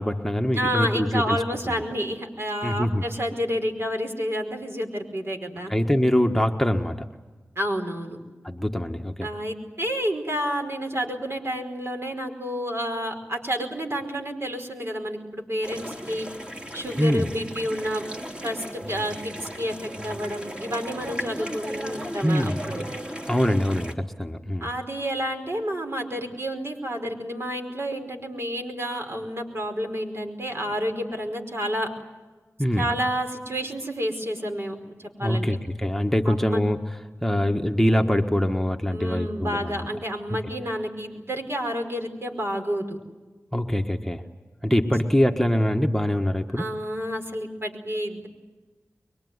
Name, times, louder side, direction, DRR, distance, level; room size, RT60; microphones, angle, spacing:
voice 1, 0.0-1.4 2.6-3.0 5.7-7.1 8.4-9.3 17.0-17.3 22.2-22.6 23.3-24.7 32.6-32.9 35.2-36.8 37.2-39.9 40.3-40.4 43.5-44.2 44.6-46.7, equal, 5° left, 3 dB, 1.5 m, -23 dB
voice 2, 0.5-5.7 7.5-8.2 9.2-16.3 16.7-18.0 18.4-22.8 24.6-31.9 32.8-35.5 36.3-36.6 38.9-43.0 46.6-48.3, equal, 50° right, 4 dB, 5.0 m, -30 dB
sound 1, 15.6-23.9, equal, 20° right, 3.3 m, -36 dB
24.5 x 22.5 x 9.6 m, 1.3 s
cardioid pair, 50°, 5 cm